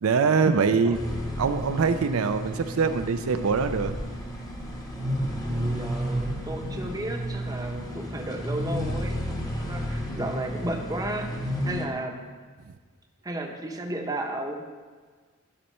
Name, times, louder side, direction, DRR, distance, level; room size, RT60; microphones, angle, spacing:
voice 1, 0.0-1.0 1.4-4.0, right 5 dB, 85° right, 9 dB, 0.5 m, -23 dB
sound 1, 0.9-11.9, equal, 20° left, 1.1 m, -32 dB
voice 2, 5.4-11.3 11.6-12.3 13.2-14.6, right 1 dB, 20° right, 2 dB, 0.9 m, -33 dB
12.5 x 4.3 x 5.4 m, 1.5 s
head